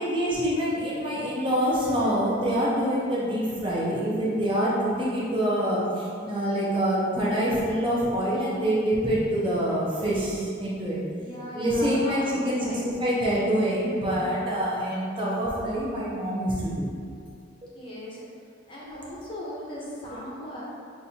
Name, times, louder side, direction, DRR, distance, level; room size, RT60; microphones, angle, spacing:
voice 1, 0.0-11.0 11.5-16.9, equal, 30° right, -7 dB, 0.8 m, -26 dB
voice 2, 11.2-13.0 17.7-18.2 18.7-20.6, equal, 30° left, -7 dB, 0.8 m, -38 dB
5.8 x 2.7 x 2.7 m, 2.3 s
head